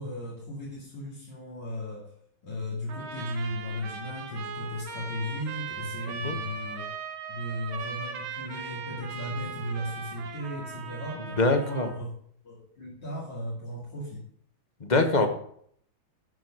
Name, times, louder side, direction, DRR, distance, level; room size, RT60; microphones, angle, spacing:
voice 1, 0.0-2.1 2.4-6.9 7.3-12.1 12.4-14.2, equal, 65° left, -6 dB, 3.0 m, -36 dB
Trumpet, 2.9-12.0, right 5 dB, 85° right, 2.1 m, -39 dB
voice 2, 11.4-11.9 14.8-15.3, left 2 dB, 30° left, 6 dB, 0.9 m, -23 dB
13.0 x 4.6 x 6.0 m, 0.64 s
omnidirectional pair, 2.2 m